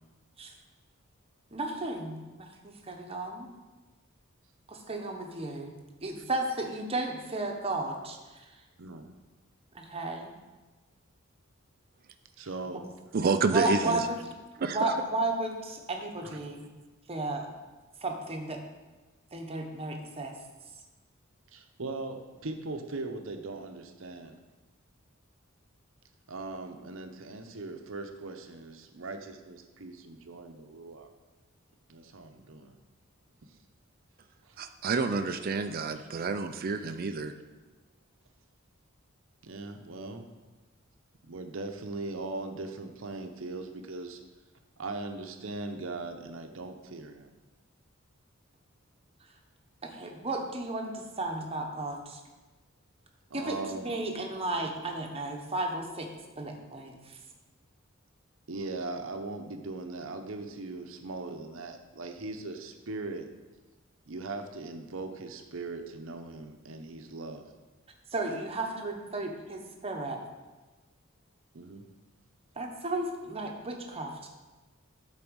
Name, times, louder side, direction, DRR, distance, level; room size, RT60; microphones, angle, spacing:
voice 1, 1.5-3.5 4.7-5.7 6.0-8.2 9.7-10.3 12.7-12.8 13.5-14.1 14.6-16.7 17.1-17.5 18.0-18.6 19.3-20.3 49.8-52.2 53.3-53.6 53.8-56.1 56.4-57.0 68.1-70.2 72.6-74.3, right 2 dB, 30° right, 2 dB, 1.0 m, -33 dB
voice 2, 8.8-9.1 12.4-12.8 13.8-14.0 16.3-16.4 21.5-24.4 26.3-31.1 31.9-32.8 34.4-34.6 39.4-40.3 41.2-44.2 44.8-47.3 53.3-53.9 58.5-63.3 64.1-67.4 71.5-71.9, right 3 dB, 70° right, 6 dB, 0.8 m, -39 dB
voice 3, 13.1-14.1 14.6-14.9 34.6-37.3, right 4 dB, 45° right, 8 dB, 0.4 m, -29 dB
8.7 x 4.1 x 6.2 m, 1.2 s
head